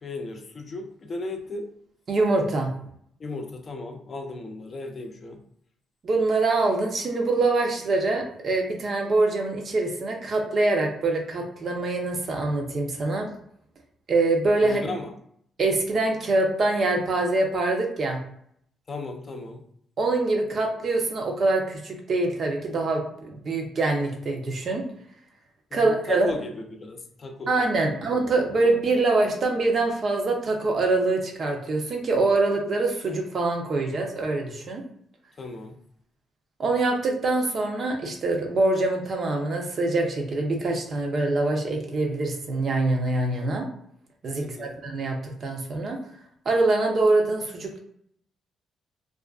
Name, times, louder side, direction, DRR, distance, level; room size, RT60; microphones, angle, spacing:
voice 1, 0.0-1.7 3.2-5.4 14.6-15.2 18.9-19.6 25.7-27.5 28.0-28.3 35.4-35.7 44.4-44.8, left 2 dB, 40° left, 3 dB, 0.5 m, -36 dB
voice 2, 2.1-2.7 6.0-13.3 14.1-14.8 15.6-18.2 20.0-24.8 25.7-26.3 27.5-34.8 36.6-43.6 44.2-46.0 46.5-47.8, right 2 dB, 50° right, 2 dB, 0.6 m, -24 dB
2.4 x 2.3 x 2.3 m, 0.67 s
cardioid pair, 90°, 0 cm